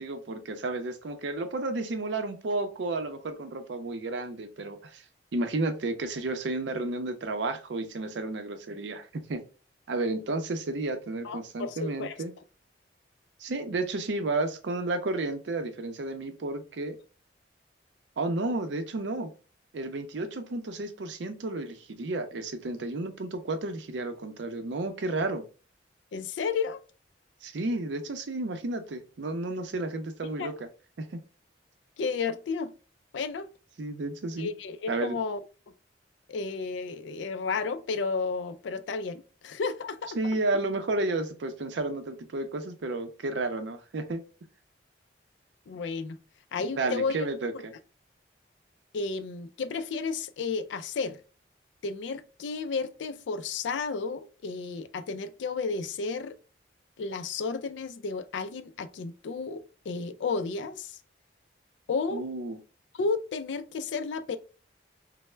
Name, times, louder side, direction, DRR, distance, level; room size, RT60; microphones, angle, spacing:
voice 1, 0.0-5.0 5.3-9.4 9.9-12.3 13.4-17.0 18.2-19.3 19.7-25.4 27.4-30.7 31.0-31.1 33.8-34.5 34.9-35.2 40.2-44.2 46.6-47.7 62.1-62.6, right 2 dB, 75° right, 0.5 m, -32 dB
voice 2, 11.2-12.2 26.1-26.8 30.4-30.5 32.0-32.7 33.1-33.5 34.4-35.4 36.3-40.2 45.7-46.2 46.5-47.3 47.5-47.6 48.9-51.2 51.8-56.4 57.0-61.0 61.9-62.2 62.9-64.4, left 4 dB, 80° left, 0.4 m, -32 dB
3.2 x 2.0 x 3.1 m
head